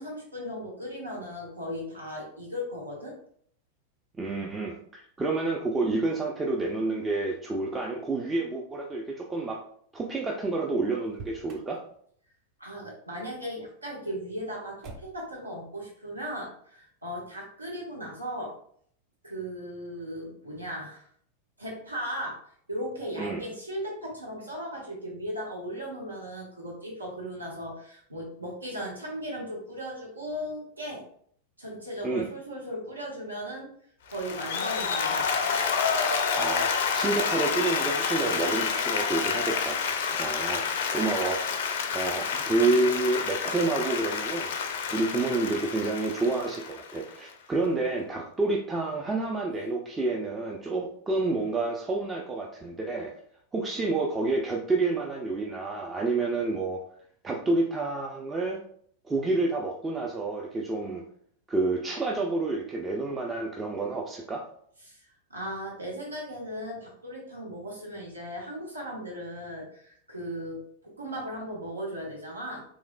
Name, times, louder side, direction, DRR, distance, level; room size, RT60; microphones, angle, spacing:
voice 1, 0.0-3.1 12.6-18.5 19.2-21.1 21.6-22.4 22.7-31.0 31.6-33.7 34.1-35.3 64.8-65.0 65.3-72.6, equal, 80° right, -3 dB, 0.8 m, -37 dB
voice 2, 4.2-9.6 9.9-11.8 23.2-23.4 32.0-32.3 36.3-39.8 40.2-41.5 41.9-44.5 44.9-53.1 53.5-56.8 57.2-58.6 59.1-61.0 61.5-64.5, right 3 dB, 15° right, -1 dB, 0.4 m, -29 dB
Motor vehicle (road), 11.0-11.8 14.8-15.4, right 3 dB, 40° right, 0.8 m, -45 dB
Applause, 34.1-47.3, left 6 dB, 55° left, 0.4 m, -29 dB
3.5 x 3.1 x 2.2 m, 0.63 s
figure-of-eight pair, 90°, 0 cm